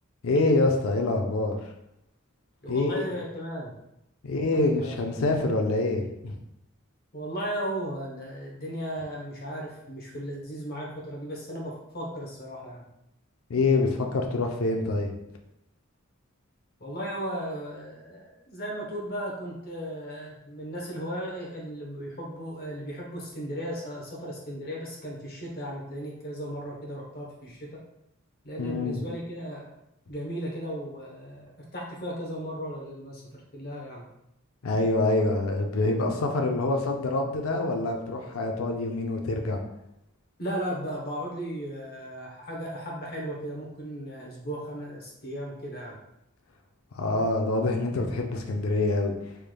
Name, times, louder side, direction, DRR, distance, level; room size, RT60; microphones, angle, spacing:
voice 1, 0.2-1.6 2.7-3.1 4.2-6.4 13.5-15.1 28.6-29.0 34.6-39.6 46.9-49.1, left 2 dB, 75° left, 3 dB, 0.5 m, -26 dB
voice 2, 2.6-3.7 4.3-4.9 7.1-12.8 16.8-27.8 28.4-29.7 30.1-34.0 40.4-46.0, equal, 45° left, -2 dB, 0.9 m, -36 dB
3.3 x 3.2 x 2.2 m, 0.83 s
head